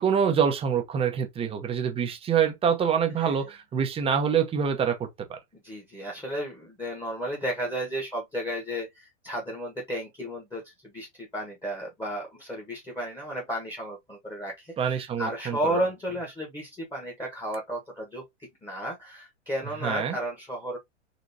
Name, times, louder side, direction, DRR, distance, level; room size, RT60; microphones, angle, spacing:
voice 1, 0.0-5.4 14.8-15.8 19.8-20.2, right 7 dB, 15° right, 0.7 m, -26 dB
voice 2, 5.6-18.2 18.6-20.8, right 1 dB, 10° left, 1.3 m, -33 dB
3.9 x 3.0 x 2.7 m
hypercardioid pair, 110°, 37 cm